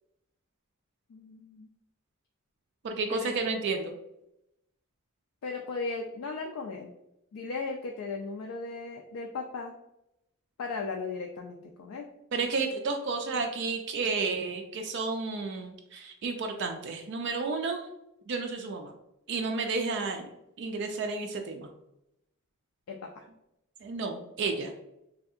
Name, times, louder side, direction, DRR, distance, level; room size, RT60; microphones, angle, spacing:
voice 1, 1.1-1.7 3.1-3.3 5.4-6.9 7.3-9.7 10.6-12.1 22.9-23.2, left 4 dB, 75° left, 2 dB, 0.3 m, -36 dB
voice 2, 2.8-3.9 12.3-17.8 18.3-18.9 19.3-20.3 20.6-21.7 23.8-24.7, right 4 dB, 55° right, 4 dB, 0.3 m, -31 dB
3.4 x 2.7 x 2.3 m, 0.85 s
head